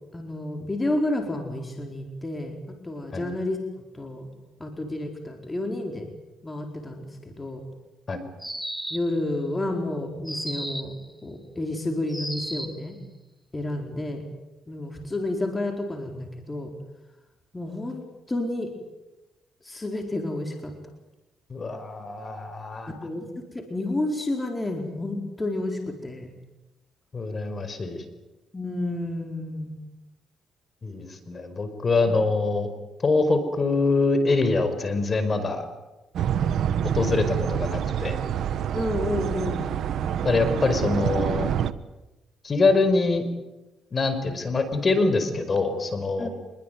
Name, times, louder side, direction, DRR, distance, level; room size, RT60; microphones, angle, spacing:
voice 1, 0.1-3.6 3.9-4.3 4.6-6.1 6.4-7.6 8.9-10.9 11.2-13.0 13.5-14.2 14.7-16.7 17.5-18.7 19.6-20.7 22.9-26.3 28.5-29.7 32.1-32.2 38.7-39.7 46.2-46.3, left 1 dB, 20° left, 4 dB, 4.4 m, -30 dB
sound 1, 8.4-9.2 10.3-11.0 12.1-12.8, equal, 5° right, 2.9 m, -34 dB
voice 2, 21.5-22.9 27.1-28.0 30.8-32.7 33.0-35.7 36.9-38.2 40.2-41.5 42.4-43.2 43.9-46.3, left 3 dB, 35° left, 10 dB, 5.0 m, -24 dB
sound 2, 36.1-41.7, right 9 dB, 70° right, 1.3 m, -27 dB
26.0 x 22.5 x 9.4 m, 1.0 s
cardioid pair, 90°, 0 cm